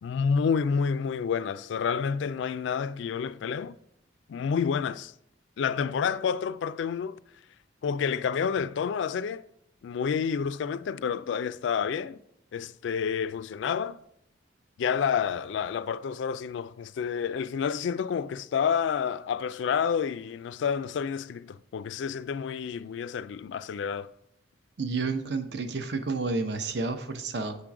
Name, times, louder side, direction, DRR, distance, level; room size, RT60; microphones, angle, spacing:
voice 1, 0.0-3.8 4.3-5.1 5.6-7.2 7.8-9.4 9.8-12.2 12.5-14.0 14.8-24.1, left 6 dB, 70° left, 0.3 m, -29 dB
voice 2, 24.8-27.6, right 3 dB, 60° right, 0.7 m, -30 dB
8.1 x 3.7 x 5.9 m
head